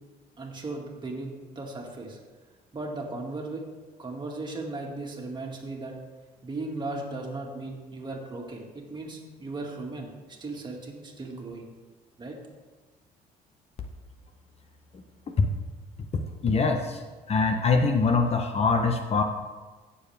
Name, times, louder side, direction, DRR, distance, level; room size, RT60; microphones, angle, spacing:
voice 1, 0.4-2.2 2.7-3.6 4.0-5.9 6.4-10.1 10.4-11.6 12.2-12.4, right 2 dB, 25° right, 0 dB, 2.1 m, -36 dB
voice 2, 16.4-17.0 17.3-19.2, left 4 dB, 35° left, 5 dB, 0.9 m, -23 dB
16.0 x 7.1 x 3.5 m, 1.3 s
cardioid pair, 110°, 17 cm